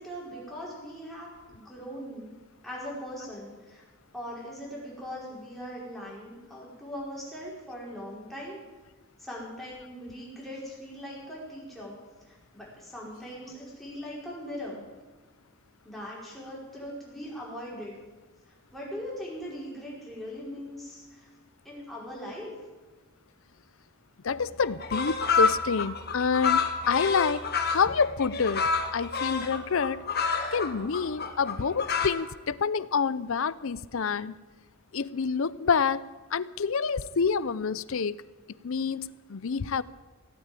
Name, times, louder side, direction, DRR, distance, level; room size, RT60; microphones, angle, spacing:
voice 1, 0.0-2.3 2.6-3.8 4.1-8.6 9.2-12.0 12.3-14.8 15.8-18.0 18.7-21.3 21.6-22.5, equal, ahead, -5 dB, 5.0 m, -40 dB
voice 2, 24.2-30.0 30.5-34.3 34.9-36.0 36.3-38.2 38.6-39.8, left 5 dB, 65° left, 18 dB, 0.5 m, -28 dB
sound 1, 24.3-24.4 24.6-32.1, left 5 dB, 45° left, 1.5 m, -29 dB
16.5 x 9.2 x 9.0 m, 1.3 s
head